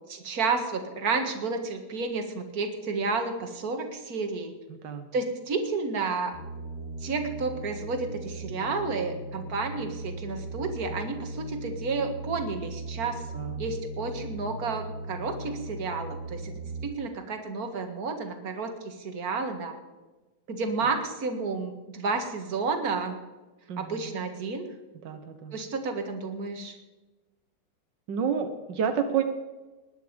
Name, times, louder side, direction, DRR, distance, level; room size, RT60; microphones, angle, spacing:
voice 1, 0.1-4.5 5.1-6.3 7.0-13.2 13.6-16.5 16.8-19.8 20.5-23.2 23.8-24.7 25.5-26.8, right 4 dB, 40° right, 6 dB, 1.6 m, -31 dB
voice 2, 4.7-5.1 13.3-13.6 23.7-24.1 25.0-25.5 28.1-29.2, right 7 dB, 80° right, 7 dB, 1.0 m, -30 dB
sound 1, 6.3-16.9, right 2 dB, 40° left, 5.5 m, -38 dB
20.0 x 10.5 x 5.2 m, 1.2 s
omnidirectional pair, 3.5 m